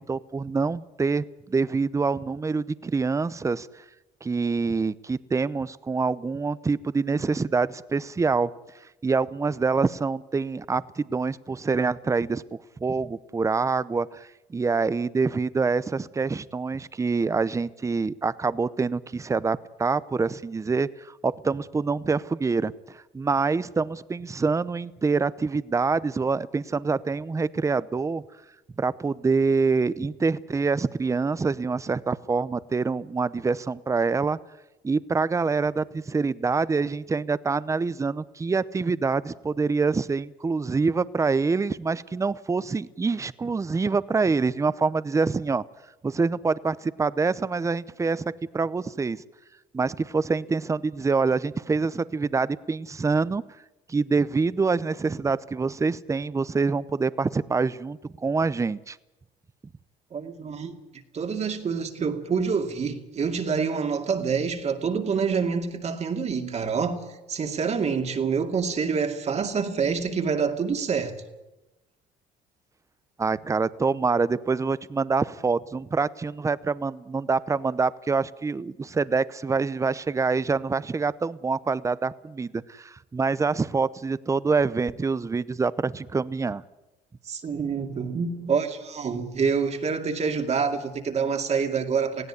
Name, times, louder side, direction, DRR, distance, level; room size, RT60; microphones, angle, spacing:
voice 1, 0.1-3.7 4.2-8.5 9.0-28.2 28.8-34.4 34.8-45.6 46.0-49.2 49.7-53.4 53.9-59.0 73.2-86.6, right 4 dB, 20° right, 0.7 m, -26 dB
voice 2, 60.1-60.7 61.1-71.2 87.3-92.3, right 5 dB, 40° right, 2.4 m, -27 dB
18.5 x 16.5 x 9.8 m
cardioid pair, 110°, 17 cm